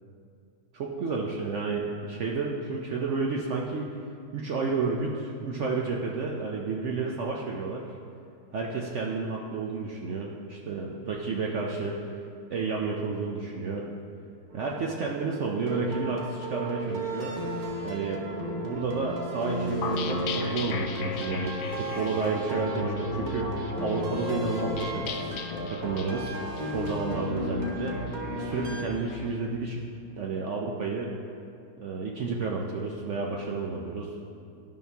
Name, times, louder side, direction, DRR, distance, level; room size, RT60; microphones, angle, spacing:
voice 1, 0.7-3.9 4.3-7.8 8.5-12.0 12.5-13.9 14.5-17.3 17.8-25.4 25.7-26.3 26.6-28.0 28.3-29.8 30.1-31.1 31.8-34.1, right 4 dB, 60° right, -1 dB, 0.8 m, -31 dB
sound 1, 14.5-28.8, right 1 dB, 35° right, 0.9 m, -34 dB
sound 2, 19.8-29.3, left 5 dB, 75° left, 1.1 m, -37 dB
12.0 x 5.5 x 3.4 m, 2.4 s
omnidirectional pair, 1.7 m